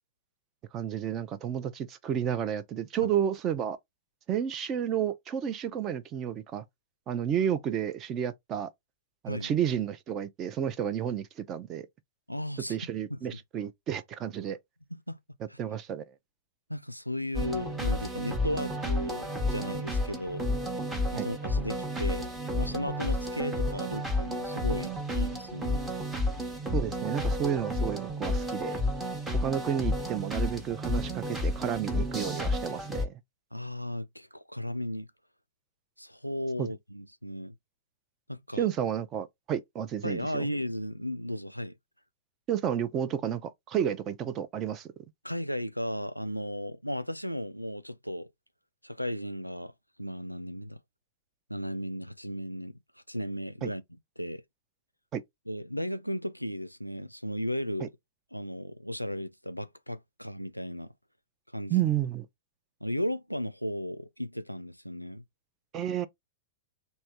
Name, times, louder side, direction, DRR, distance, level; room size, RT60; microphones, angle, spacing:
voice 1, 0.7-3.8 4.3-6.6 7.1-8.7 9.2-11.9 12.7-14.6 15.6-16.1 21.2-21.3 26.7-28.7 29.4-33.1 36.6-36.7 38.6-40.5 42.5-44.9 53.6-53.7 55.1-55.2 57.8-57.9 61.7-62.3 65.7-66.1, right 9 dB, 30° right, 0.5 m, -31 dB
voice 2, 12.3-12.8 13.1-13.2 14.9-15.2 15.5-15.6 16.7-20.5 21.1-22.3 22.6-25.9 33.5-35.1 36.0-37.5 38.3-38.7 40.0-41.7 45.2-48.3 48.8-49.7 50.0-50.8 51.5-52.8 53.1-53.8 54.2-54.4 55.5-57.9 58.3-60.9 61.5-61.8 62.8-65.2, equal, 90° left, 0.3 m, -35 dB
sound 1, 17.3-33.0, left 1 dB, 10° right, 0.8 m, -31 dB
3.2 x 2.7 x 2.9 m
figure-of-eight pair, 100°, 0 cm